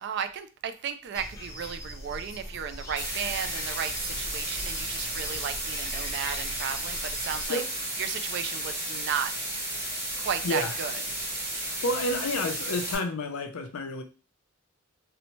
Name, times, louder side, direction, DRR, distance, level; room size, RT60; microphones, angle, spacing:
voice 1, 0.0-7.6 8.0-9.4 10.2-11.0, right 8 dB, 55° right, 0.3 m, -34 dB
sound 1, 1.1-7.5, left 1 dB, 15° left, 0.6 m, -40 dB
sound 2, 3.0-13.0, right 1 dB, 10° right, 0.9 m, -33 dB
voice 2, 10.4-10.7 11.5-14.0, left 2 dB, 90° left, 0.5 m, -30 dB
2.7 x 2.1 x 2.9 m
head